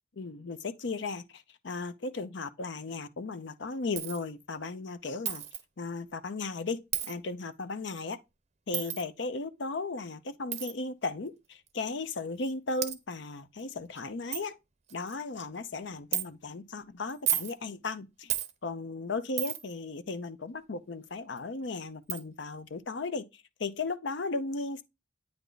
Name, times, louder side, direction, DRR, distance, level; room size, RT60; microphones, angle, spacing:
voice 1, 0.2-5.4 5.8-8.2 8.7-14.6 14.9-18.3 18.6-24.8, left 3 dB, 60° left, 0.6 m, -36 dB
Coin (dropping), 4.0-4.2 5.3-5.6 6.9-7.1 8.7-9.0 10.5-10.7 11.7-11.8 12.4-12.5 12.8-13.0 13.6-13.7 14.0-14.1 14.3-14.5 14.9-15.2 16.1-16.3 17.1-17.5 18.3-18.5 19.4-19.7 21.4-21.5 22.1-22.2, right 11 dB, 35° right, 0.6 m, -32 dB
9.1 x 3.5 x 3.9 m
head